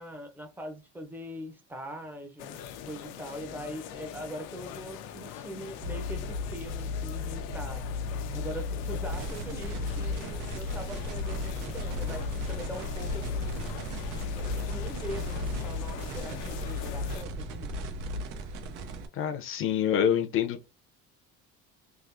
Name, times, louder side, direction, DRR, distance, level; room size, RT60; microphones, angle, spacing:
voice 1, 0.0-2.6 2.8-7.9 8.3-13.7 14.3-17.7, equal, 5° right, 0.7 m, -42 dB
sound 1, 2.4-17.2, left 9 dB, 80° left, 0.6 m, -43 dB
sound 2, 5.8-18.2, left 4 dB, 60° right, 1.9 m, -35 dB
sound 3, 9.1-19.1, right 3 dB, 75° right, 0.8 m, -39 dB
voice 2, 19.1-20.6, left 9 dB, 40° left, 0.7 m, -26 dB
3.6 x 2.5 x 2.5 m
cardioid pair, 150°, 31 cm